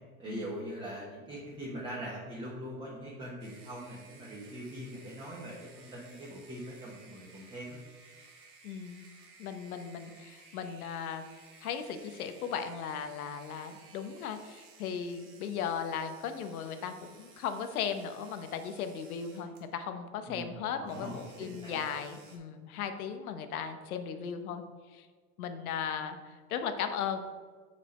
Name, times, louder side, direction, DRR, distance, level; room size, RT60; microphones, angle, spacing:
voice 1, 0.2-7.8 20.3-20.6 20.8-21.8, right 1 dB, 10° right, -5 dB, 1.3 m, -42 dB
sound 1, 3.4-19.7 20.8-22.4, right 4 dB, 85° right, 2.2 m, -57 dB
voice 2, 8.6-9.0 9.4-11.2 11.6-24.6 24.9-25.1 25.4-27.2, left 7 dB, 80° left, 8 dB, 1.0 m, -37 dB
6.3 x 6.1 x 4.3 m, 1.5 s
supercardioid pair, 140°, 43 cm